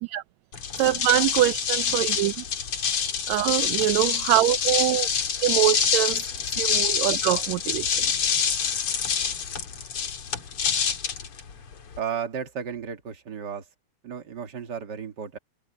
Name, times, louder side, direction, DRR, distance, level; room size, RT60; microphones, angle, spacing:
sound 1, 0.5-12.0, left 7 dB, 45° left, 2.5 m, -26 dB
voice 1, 0.8-2.4 3.3-5.1 5.4-8.0, right 15 dB, 80° right, 1.6 m, -24 dB
voice 2, 12.0-13.6 14.0-15.4, right 7 dB, 35° right, 2.1 m, -33 dB
omnidirectional pair, 3.7 m